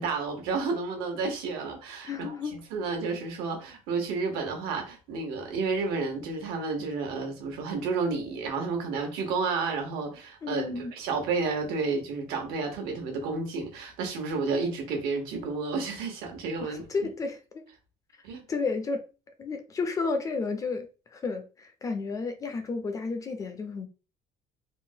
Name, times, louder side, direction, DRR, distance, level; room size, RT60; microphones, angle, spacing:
voice 1, 0.0-17.1 18.2-18.4, right 4 dB, 90° right, 1.1 m, -31 dB
voice 2, 2.0-2.5 10.4-10.9 16.6-17.6 18.5-19.0 19.4-23.9, left 4 dB, 20° left, 0.3 m, -32 dB
3.6 x 2.1 x 2.7 m
cardioid pair, 170°, 16 cm